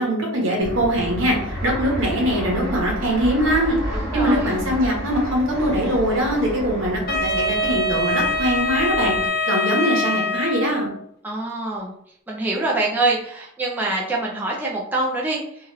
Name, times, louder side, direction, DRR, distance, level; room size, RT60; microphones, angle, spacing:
voice 1, 0.0-3.8 4.1-9.1 9.5-10.9, equal, 70° right, -1 dB, 1.0 m, -22 dB
Fixed-wing aircraft airplane, 0.6-9.3, equal, 50° right, 1.2 m, -31 dB
voice 2, 3.9-4.5 11.2-11.9 12.3-15.7, right 2 dB, 10° right, -4 dB, 0.4 m, -25 dB
Wind instrument woodwind instrument, 7.1-10.9, left 2 dB, 50° left, 0.5 m, -24 dB
3.0 x 2.4 x 2.9 m, 0.70 s
head